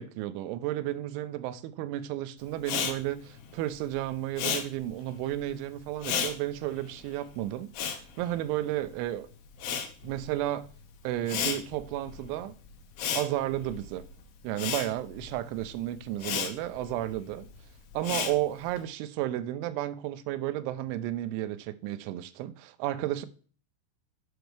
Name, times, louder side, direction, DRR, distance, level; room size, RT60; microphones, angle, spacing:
voice 1, 0.0-9.3 10.0-10.7 11.0-12.5 13.1-14.1 14.4-17.5 17.9-23.3, right 13 dB, 85° right, 3.0 m, -33 dB
Respiratory sounds, 2.6-9.1 9.3-18.8, left 7 dB, 70° left, 2.7 m, -35 dB
8.0 x 6.1 x 3.3 m
omnidirectional pair, 5.4 m